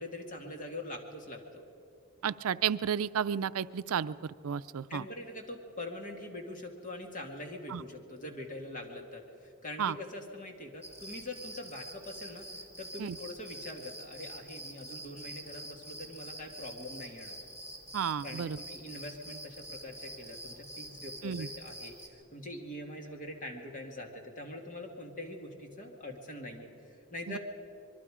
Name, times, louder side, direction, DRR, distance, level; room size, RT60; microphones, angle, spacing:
voice 1, 0.0-1.6 4.9-17.4 18.2-27.4, left 1 dB, 40° left, 3 dB, 2.3 m, -43 dB
voice 2, 2.2-5.0 7.7-7.8 9.8-10.0 13.0-13.2 17.9-18.6 21.2-21.5 27.3-27.4, right 8 dB, 80° right, 15 dB, 0.4 m, -32 dB
sound 1, 10.8-22.1, right 1 dB, 15° left, 2.1 m, -46 dB
25.0 x 22.0 x 5.0 m, 2.6 s
head